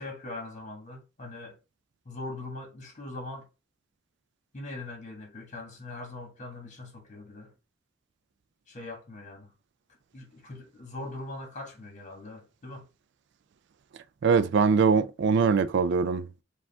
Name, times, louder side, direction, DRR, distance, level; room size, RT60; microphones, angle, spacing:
voice 1, 0.0-1.6 2.0-3.5 4.5-7.5 8.7-9.5 10.1-12.9, left 2 dB, 40° left, 1.4 m, -41 dB
voice 2, 14.2-16.3, right 5 dB, 60° right, 0.3 m, -22 dB
4.9 x 2.4 x 3.4 m
head